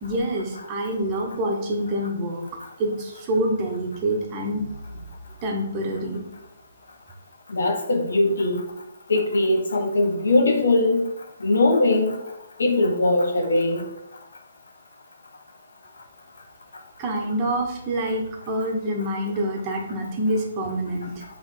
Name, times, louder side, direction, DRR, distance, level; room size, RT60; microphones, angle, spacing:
voice 1, 0.0-2.4 2.8-5.0 5.4-6.2 17.0-21.2, right 1 dB, 25° right, 0 dB, 1.3 m, -26 dB
voice 2, 7.5-8.6 9.1-11.0 11.4-12.2 12.6-13.9, left 2 dB, 85° left, 2 dB, 1.2 m, -20 dB
6.4 x 3.5 x 5.0 m, 0.83 s
hypercardioid pair, 160°, 0 cm